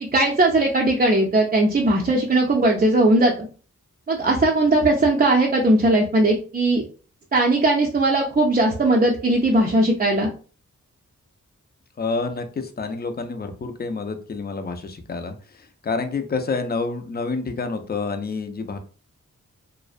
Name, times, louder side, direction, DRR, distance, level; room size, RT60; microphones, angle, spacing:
voice 1, 0.0-3.3 4.1-6.9 7.3-10.3, right 2 dB, 30° right, -1 dB, 0.4 m, -19 dB
voice 2, 12.0-18.8, left 4 dB, 30° left, 7 dB, 0.4 m, -28 dB
2.4 x 2.1 x 2.4 m, 0.38 s
wide cardioid pair, 75°, 31 cm